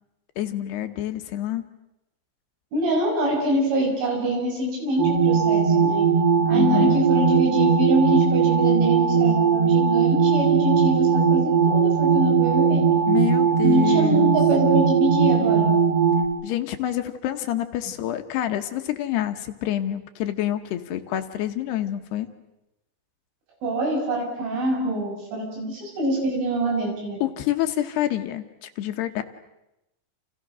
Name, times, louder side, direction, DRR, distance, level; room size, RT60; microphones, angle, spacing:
voice 1, 0.4-1.6 6.5-7.0 13.1-14.4 16.4-22.3 27.2-29.2, left 12 dB, 70° left, 7 dB, 2.9 m, -27 dB
voice 2, 2.7-6.1 6.5-12.8 13.6-15.7 23.6-27.2, right 1 dB, 85° right, 1 dB, 9.1 m, -25 dB
sound 1, 5.0-16.2, right 6 dB, 65° right, 4.3 m, -19 dB
30.0 x 29.0 x 6.2 m, 0.90 s
omnidirectional pair, 5.4 m